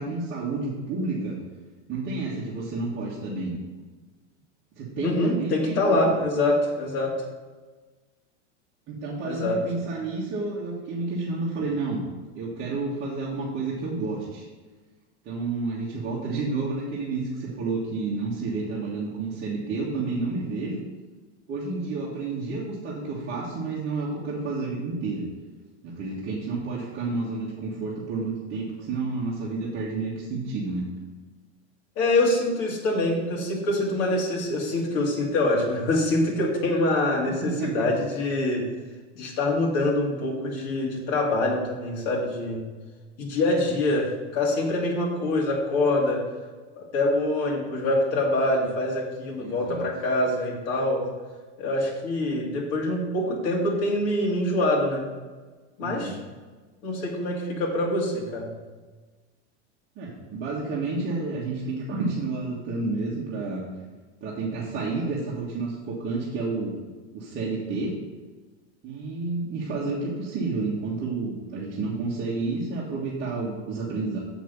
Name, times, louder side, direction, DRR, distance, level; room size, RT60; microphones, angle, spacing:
voice 1, 0.0-1.4 1.9-3.6 4.8-6.1 8.9-12.0 12.3-14.5 15.2-20.8 21.5-25.2 25.8-30.8 37.4-37.9 49.4-49.8 55.8-56.2 59.9-63.6 64.2-66.7 67.1-67.9 68.8-74.2, right 3 dB, 30° right, -6 dB, 1.7 m, -30 dB
voice 2, 5.0-7.1 9.2-9.6 32.0-38.7 39.1-42.6 43.2-46.2 46.7-51.1 51.6-55.1 55.8-56.2 56.8-58.5, left 2 dB, 45° left, -2 dB, 2.5 m, -25 dB
7.2 x 6.0 x 6.7 m, 1.3 s
supercardioid pair, 150°, 35 cm